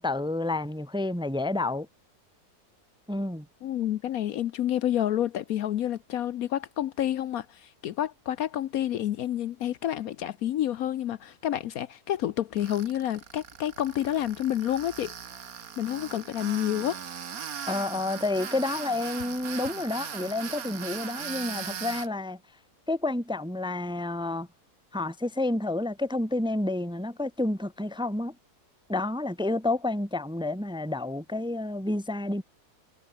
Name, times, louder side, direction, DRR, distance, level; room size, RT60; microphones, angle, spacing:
voice 1, 0.0-1.9 3.1-3.5 17.7-22.4 22.9-24.5 24.9-28.4 28.9-32.4, left 2 dB, 5° right, 0.9 m, -29 dB
voice 2, 3.6-15.1 15.8-17.0, left 11 dB, 65° left, 1.1 m, -29 dB
Tools, 12.6-22.1, right 7 dB, 60° right, 1.8 m, -39 dB
omnidirectional pair, 1.7 m